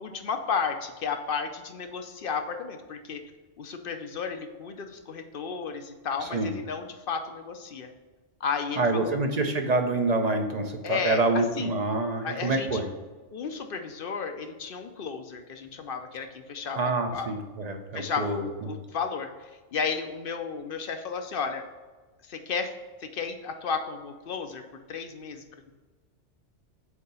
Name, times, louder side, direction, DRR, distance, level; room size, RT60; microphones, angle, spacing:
voice 1, 0.0-3.2 3.6-7.9 8.4-9.2 10.8-11.2 11.6-11.8 12.2-12.8 13.3-17.3 17.9-21.6 22.3-22.7 23.0-24.6 24.9-25.4, left 5 dB, 55° left, 6 dB, 0.7 m, -33 dB
voice 2, 6.2-6.5 8.8-12.9 16.7-18.7, right 2 dB, 40° right, 5 dB, 0.6 m, -27 dB
8.0 x 2.8 x 5.4 m, 1.3 s
omnidirectional pair, 1.3 m